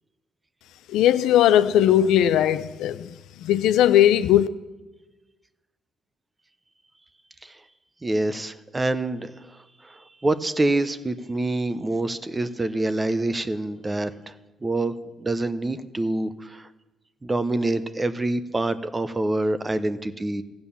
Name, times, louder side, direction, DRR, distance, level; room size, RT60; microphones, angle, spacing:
voice 1, 0.9-4.5, left 11 dB, 90° left, 0.5 m, -19 dB
voice 2, 8.0-14.3 14.6-14.9 15.2-16.7 17.2-20.4, right 2 dB, 20° right, 0.7 m, -26 dB
14.5 x 8.8 x 7.0 m
cardioid pair, 90°, 0 cm